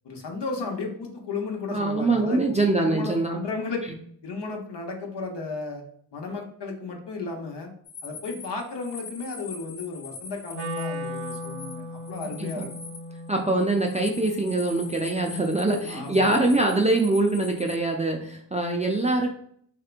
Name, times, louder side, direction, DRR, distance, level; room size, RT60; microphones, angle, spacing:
voice 1, 0.0-2.4 2.8-3.8 4.2-5.8 6.1-7.7 8.0-12.7 15.9-16.5, left 4 dB, 60° left, 1 dB, 0.9 m, -34 dB
voice 2, 1.7-3.4 12.2-12.7 13.3-19.3, right 2 dB, 15° right, 1 dB, 0.4 m, -24 dB
sound 1, 7.9-17.8, left 4 dB, 30° left, 0.9 m, -43 dB
Wind instrument woodwind instrument, 10.5-16.6, left 1 dB, 80° right, 0.8 m, -38 dB
3.3 x 2.8 x 2.4 m, 0.63 s
cardioid pair, 60°, 46 cm